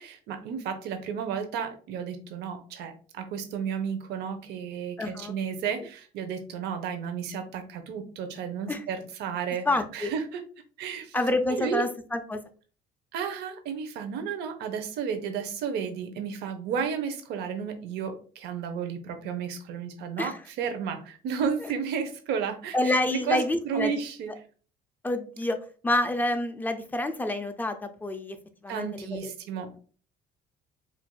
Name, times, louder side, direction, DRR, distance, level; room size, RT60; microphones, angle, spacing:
voice 1, 0.0-9.7 9.9-10.4 10.8-11.2 11.6-11.8 13.1-24.3 28.7-29.7, right 7 dB, 80° right, 7 dB, 0.7 m, -32 dB
voice 2, 5.0-5.3 8.7-8.8 9.7-10.1 11.1-12.4 20.2-20.4 21.6-21.7 22.7-23.9 25.0-25.6 25.8-28.4 28.6-29.3, left 2 dB, 10° left, 7 dB, 0.5 m, -28 dB
4.5 x 2.5 x 2.2 m, 0.39 s
cardioid pair, 110°, 17 cm